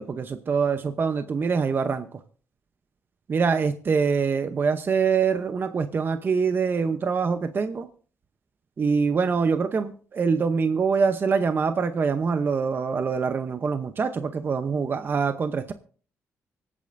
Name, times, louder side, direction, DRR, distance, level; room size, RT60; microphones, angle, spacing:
voice 1, 0.0-2.2 3.3-7.9 8.8-15.7, right 5 dB, 40° right, 9 dB, 0.8 m, -24 dB
24.5 x 8.6 x 2.6 m, 0.43 s
cardioid pair, 110°, 5 cm